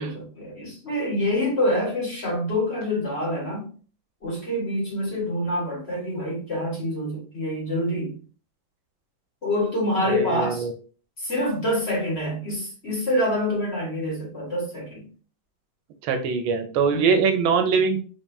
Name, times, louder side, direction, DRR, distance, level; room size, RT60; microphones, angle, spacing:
voice 1, 0.0-3.7 4.2-8.2 9.4-10.7 11.2-15.1 16.9-17.2, left 1 dB, 35° left, -5 dB, 1.6 m, -26 dB
voice 2, 10.0-10.7 16.0-18.0, right 5 dB, 80° right, 7 dB, 1.3 m, -22 dB
4.1 x 3.6 x 2.3 m, 0.40 s
omnidirectional pair, 2.3 m